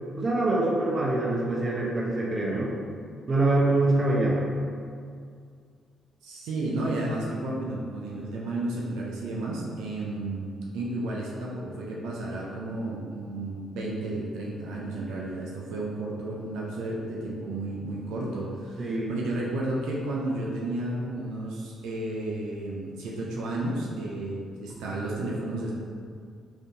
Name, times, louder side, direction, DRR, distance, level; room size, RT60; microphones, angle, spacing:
voice 1, 0.2-2.7 3.3-4.4 18.8-19.2, right 2 dB, 40° right, -4 dB, 0.7 m, -24 dB
voice 2, 6.2-25.7, right 2 dB, 85° right, -4 dB, 0.4 m, -32 dB
3.3 x 2.7 x 2.6 m, 2.2 s
supercardioid pair, 60°, 0 cm